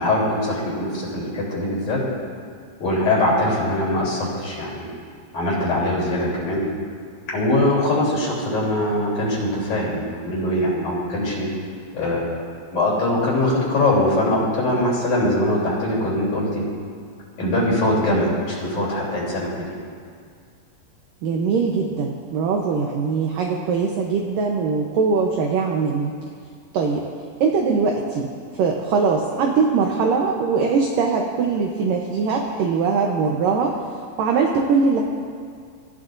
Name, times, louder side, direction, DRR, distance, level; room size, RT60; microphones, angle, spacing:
voice 1, 0.0-2.0 2.8-4.9 5.3-6.6 7.3-11.5 11.9-12.4 12.7-16.6 17.4-19.8, left 1 dB, 40° left, -5 dB, 4.4 m, -22 dB
voice 2, 21.2-26.1 26.7-27.0 27.4-28.3 28.6-33.8 34.2-35.0, right 5 dB, 85° right, 1 dB, 1.9 m, -21 dB
26.5 x 14.5 x 2.6 m, 2.1 s
omnidirectional pair, 5.2 m